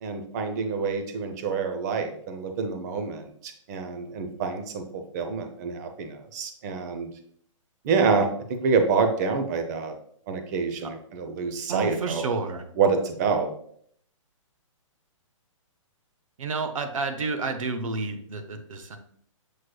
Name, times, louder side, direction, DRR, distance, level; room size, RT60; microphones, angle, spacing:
voice 1, 0.0-4.8 5.1-7.1 7.8-9.9 10.3-12.2 12.8-13.5, right 5 dB, 30° right, 6 dB, 0.6 m, -27 dB
voice 2, 11.7-12.6 16.4-19.0, right 3 dB, 80° right, 7 dB, 0.8 m, -30 dB
6.5 x 3.0 x 2.2 m, 0.64 s
hypercardioid pair, 155°, 17 cm